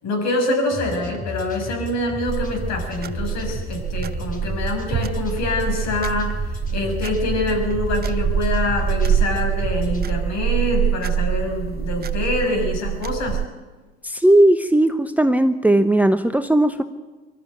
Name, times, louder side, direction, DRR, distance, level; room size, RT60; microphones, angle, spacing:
voice 1, 0.0-6.3 6.7-13.4, left 2 dB, 55° left, 3 dB, 6.7 m, -25 dB
sound 1, 0.7-10.0, left 2 dB, 25° left, 4.5 m, -33 dB
sound 2, 2.3-13.5, right 8 dB, 30° right, 0.9 m, -25 dB
voice 2, 14.0-16.8, right 1 dB, 5° right, 9 dB, 1.0 m, -17 dB
23.5 x 12.5 x 9.0 m, 1.3 s
hypercardioid pair, 70°, 32 cm